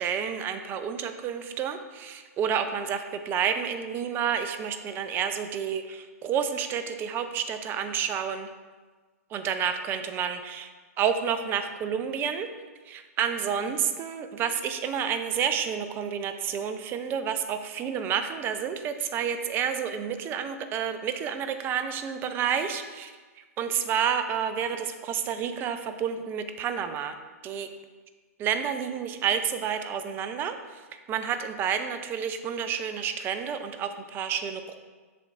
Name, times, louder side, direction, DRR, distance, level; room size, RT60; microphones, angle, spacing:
voice 1, 0.0-8.5 9.3-10.7 11.0-12.5 12.9-23.1 23.6-27.2 27.4-27.7 28.4-30.6 31.1-34.8, right 8 dB, 25° right, 8 dB, 0.5 m, -29 dB
7.6 x 6.6 x 2.5 m, 1.4 s
hypercardioid pair, 125°, 8 cm